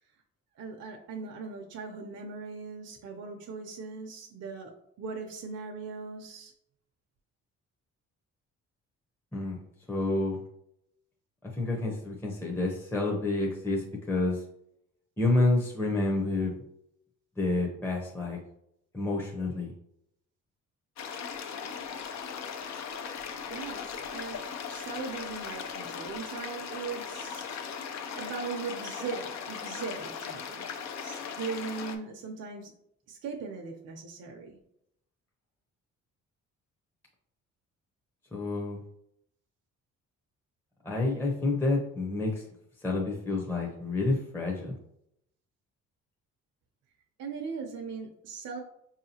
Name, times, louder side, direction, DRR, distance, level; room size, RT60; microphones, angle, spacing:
voice 1, 0.5-4.7 5.0-6.5 23.4-24.4 24.7-27.4 28.2-30.7 31.0-32.7 33.1-34.6 47.2-48.6, right 4 dB, 55° right, 1 dB, 0.6 m, -39 dB
voice 2, 9.9-10.4 11.5-14.4 15.2-16.5 17.4-18.4 18.9-19.7 38.3-38.8 40.8-42.4 42.8-44.7, left 2 dB, 5° left, -2 dB, 0.7 m, -29 dB
sound 1, 21.0-31.9, left 6 dB, 65° left, 0.6 m, -38 dB
4.7 x 2.8 x 2.8 m, 0.76 s
cardioid pair, 90°, 30 cm